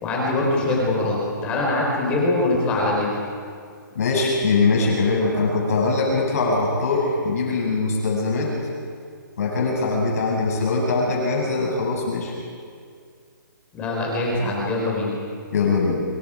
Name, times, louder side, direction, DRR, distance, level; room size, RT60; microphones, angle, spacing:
voice 1, 0.0-3.1 13.7-15.2, left 2 dB, 10° left, -3 dB, 4.3 m, -23 dB
voice 2, 3.9-8.5 9.4-12.3 15.5-16.0, left 3 dB, 45° left, -3 dB, 7.8 m, -22 dB
28.5 x 26.0 x 5.1 m, 2.2 s
hypercardioid pair, 175°, 11 cm